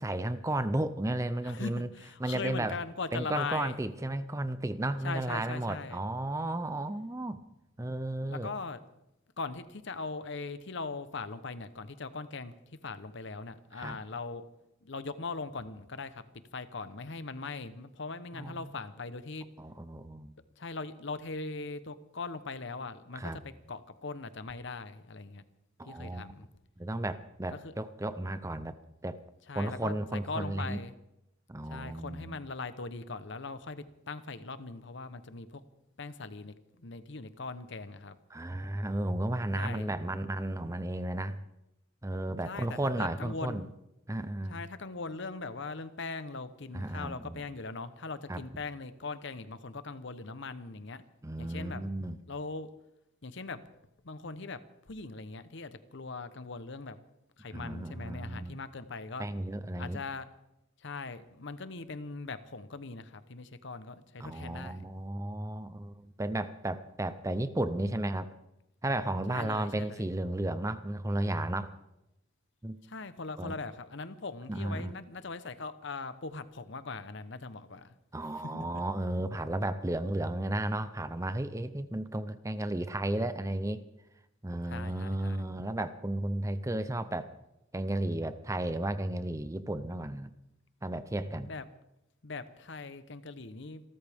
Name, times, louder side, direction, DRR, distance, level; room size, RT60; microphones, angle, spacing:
voice 1, 0.0-1.9 2.2-2.8 3.1-7.4 7.8-8.5 13.7-14.0 18.3-18.7 19.6-20.4 23.1-23.4 25.8-26.3 26.8-28.7 29.0-29.2 29.5-30.8 31.5-32.4 38.3-41.4 42.0-43.7 44.1-44.6 46.7-47.4 48.3-48.4 51.2-52.2 57.5-58.6 59.2-60.0 64.2-68.3 68.8-71.7 72.6-72.8 73.4-73.6 74.5-75.0 78.1-83.8 84.4-87.3 87.7-90.3 90.8-91.5, right 1 dB, 15° right, 12 dB, 0.6 m, -33 dB
voice 2, 1.4-3.8 5.0-6.0 8.2-8.8 9.4-12.5 12.8-14.4 14.8-16.2 16.5-19.5 20.6-25.4 25.9-26.5 27.5-27.7 29.5-30.9 31.7-35.6 36.0-38.2 39.5-39.9 42.4-43.7 44.5-51.0 51.4-51.8 52.3-52.7 53.2-53.6 54.0-54.6 54.9-57.0 57.4-59.2 59.8-60.3 60.8-64.8 69.3-70.1 72.8-77.9 78.5-78.6 84.7-85.4 91.4-91.6 92.2-93.8, left 3 dB, 60° left, 12 dB, 0.9 m, -40 dB
27.5 x 13.0 x 3.6 m, 0.89 s
head